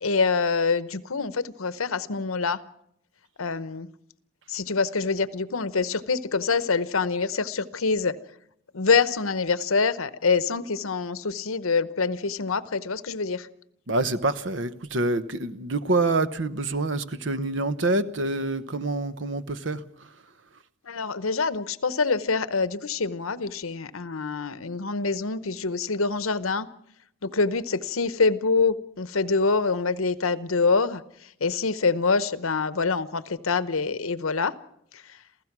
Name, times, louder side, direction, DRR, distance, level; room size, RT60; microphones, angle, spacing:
voice 1, 0.0-2.6 3.4-3.9 4.5-8.1 8.7-13.5 20.9-26.7 27.2-31.0 31.4-34.5, left 4 dB, 90° left, 0.9 m, -25 dB
voice 2, 13.9-19.8, right 2 dB, 65° right, 1.0 m, -26 dB
28.0 x 16.0 x 6.1 m
head